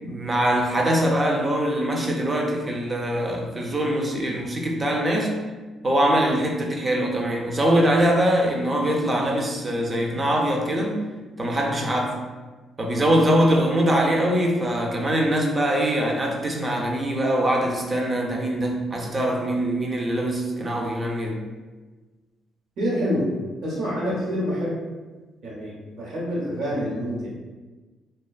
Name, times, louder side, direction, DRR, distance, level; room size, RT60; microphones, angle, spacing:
voice 1, 0.0-5.4 5.8-11.0 11.4-12.2 12.8-21.4, right 1 dB, 30° right, 0 dB, 0.4 m, -23 dB
voice 2, 22.8-23.3 23.6-24.8 25.4-27.3, equal, 75° right, -5 dB, 0.9 m, -27 dB
2.4 x 2.3 x 2.3 m, 1.3 s
cardioid pair, 90°, 0 cm